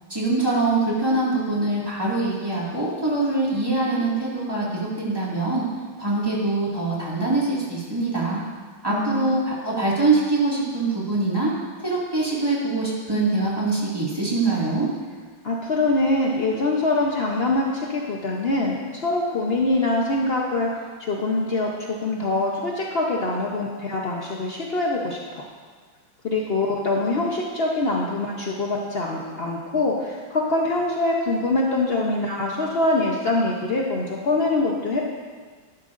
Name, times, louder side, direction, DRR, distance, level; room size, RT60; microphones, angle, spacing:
voice 1, 0.1-5.6 6.0-8.4 8.8-11.5 11.8-14.9, right 2 dB, 10° right, -6 dB, 1.9 m, -23 dB
voice 2, 8.9-9.4 15.4-25.2 26.2-35.0, left 2 dB, 75° left, -2 dB, 0.5 m, -24 dB
11.0 x 11.0 x 2.5 m, 1.5 s
omnidirectional pair, 2.2 m